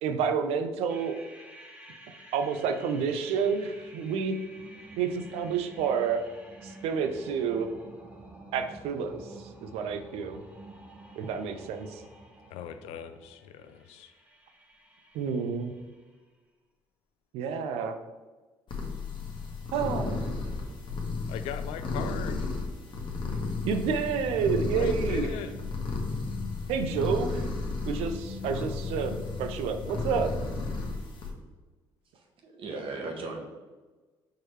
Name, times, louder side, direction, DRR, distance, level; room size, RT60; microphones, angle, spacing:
voice 1, 0.0-1.2 2.3-4.4 5.0-6.2 6.6-7.7 8.5-10.4 11.2-12.0 15.1-15.7 17.3-18.0 19.7-20.5 23.6-25.3 26.7-27.5 27.8-30.3, right 6 dB, 75° right, 8 dB, 0.4 m, -29 dB
sound 1, 0.9-16.2, right 2 dB, 10° right, 0.9 m, -50 dB
voice 2, 12.5-14.1 21.3-22.5 24.7-25.6, left 8 dB, 75° left, 10 dB, 0.4 m, -39 dB
sound 2, 18.7-31.3, left 3 dB, 50° left, 1.0 m, -34 dB
sound 3, 23.2-30.9, left 2 dB, 30° left, 0.9 m, -41 dB
voice 3, 32.1-33.4, right 3 dB, 60° right, 1 dB, 1.0 m, -37 dB
4.6 x 3.1 x 3.2 m, 1.3 s
supercardioid pair, 65°, 10 cm